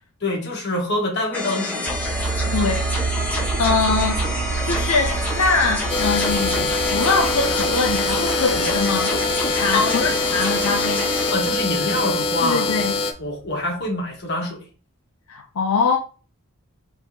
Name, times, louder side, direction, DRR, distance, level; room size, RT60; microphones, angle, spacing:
voice 1, 0.2-1.9 9.7-10.1 11.3-12.9 13.2-14.7, left 2 dB, 50° left, 1.4 m, -25 dB
sound 1, 1.3-11.3, left 1 dB, 5° left, 1.0 m, -28 dB
sound 2, 1.9-13.2 13.5-13.6, right 5 dB, 50° right, 0.4 m, -29 dB
voice 2, 2.5-3.3 3.6-4.3 4.6-9.2 9.5-11.1 12.4-13.0 15.3-16.0, left 4 dB, 75° left, 0.5 m, -23 dB
sound 3, 5.9-13.1, left 3 dB, 25° left, 0.4 m, -24 dB
4.8 x 3.5 x 2.7 m
head